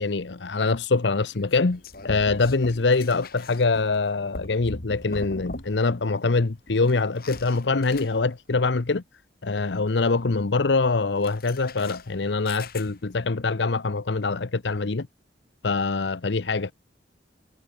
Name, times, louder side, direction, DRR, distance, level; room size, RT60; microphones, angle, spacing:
voice 1, 0.0-9.0 9.4-15.1 15.6-16.7, left 3 dB, 70° left, 0.8 m, -24 dB
sound 1, 1.2-6.0 6.2-8.5 11.1-13.2, left 2 dB, 55° left, 3.9 m, -41 dB
head